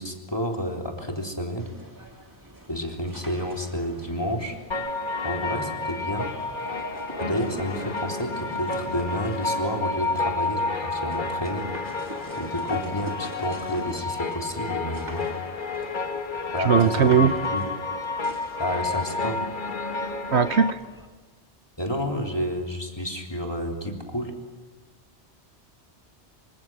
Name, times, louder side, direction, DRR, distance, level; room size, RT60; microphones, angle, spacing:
voice 1, 0.0-1.7 2.7-4.6 5.2-6.3 7.2-11.7 12.4-15.3 16.5-17.6 18.6-19.5 21.8-24.3, equal, 20° left, 1 dB, 3.6 m, -30 dB
sound 1, 1.6-21.1, right 1 dB, 15° right, 2.0 m, -45 dB
sound 2, 4.7-20.7, left 3 dB, 45° left, 1.7 m, -30 dB
sound 3, 5.1-14.9, equal, 50° right, 7.8 m, -51 dB
voice 2, 16.6-17.3 20.3-20.8, right 7 dB, 75° right, 11 dB, 1.2 m, -19 dB
27.0 x 25.5 x 6.3 m, 1.4 s
omnidirectional pair, 1.2 m